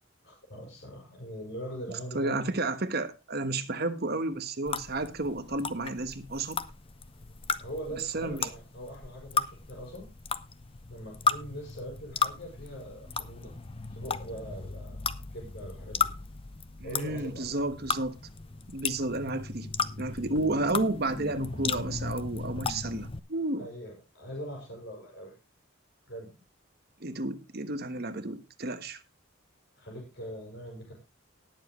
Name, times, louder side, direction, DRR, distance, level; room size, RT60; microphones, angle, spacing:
voice 1, 0.2-2.5 7.6-10.1 10.9-13.5 13.9-15.0 15.3-16.1 16.8-17.6 23.6-25.3 26.1-26.3 29.8-30.9, equal, 60° left, 5.7 m, -42 dB
voice 2, 2.1-6.6 8.1-8.5 16.8-18.2 18.7-19.7 20.0-23.7 27.0-29.0, right 2 dB, 50° right, 1.2 m, -31 dB
sound 1, 4.7-23.2, left 5 dB, 30° left, 0.7 m, -35 dB
19.5 x 7.4 x 3.1 m
head